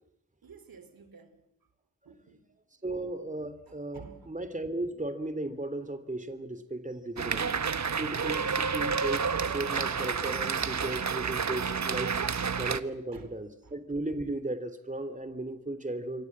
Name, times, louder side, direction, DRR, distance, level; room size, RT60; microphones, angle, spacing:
voice 1, 0.4-1.7 2.0-2.5 3.7-4.4 13.1-13.8, right 5 dB, 75° right, 3.4 m, -53 dB
voice 2, 2.8-7.6 8.0-12.2 12.5-16.3, right 2 dB, 20° right, 3.1 m, -36 dB
sound 1, 7.2-12.8, right 5 dB, 50° right, 1.3 m, -30 dB
28.0 x 24.0 x 7.5 m
cardioid pair, 65°, 35 cm